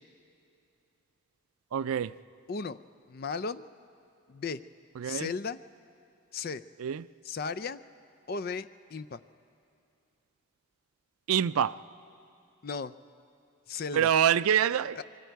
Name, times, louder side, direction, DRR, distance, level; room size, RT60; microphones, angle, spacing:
voice 1, 1.7-2.1 5.0-5.3 6.8-7.1 11.3-11.8 13.9-15.0, right 9 dB, 90° right, 16 dB, 0.4 m, -26 dB
voice 2, 3.1-3.7 4.3-4.6 5.0-5.6 6.3-6.6 7.2-7.8 8.3-9.2 12.6-12.9 13.7-14.1 15.0-15.1, left 5 dB, 45° left, 15 dB, 0.4 m, -35 dB
26.0 x 23.5 x 4.6 m, 2.7 s
head